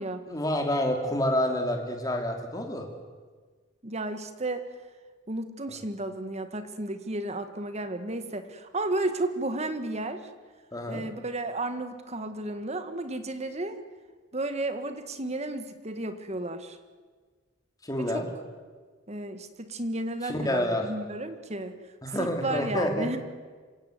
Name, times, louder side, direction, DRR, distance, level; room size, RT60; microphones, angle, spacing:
voice 1, 0.3-2.9 5.7-5.8 10.7-11.0 17.8-18.2 20.2-20.8 22.0-23.2, left 1 dB, 20° left, 3 dB, 3.1 m, -28 dB
voice 2, 3.8-4.6 5.3-10.3 10.9-13.8 14.3-16.8 18.0-18.2 19.1-21.8 22.2-23.2, right 2 dB, 35° right, 9 dB, 1.7 m, -33 dB
27.0 x 17.0 x 8.1 m, 1.5 s
head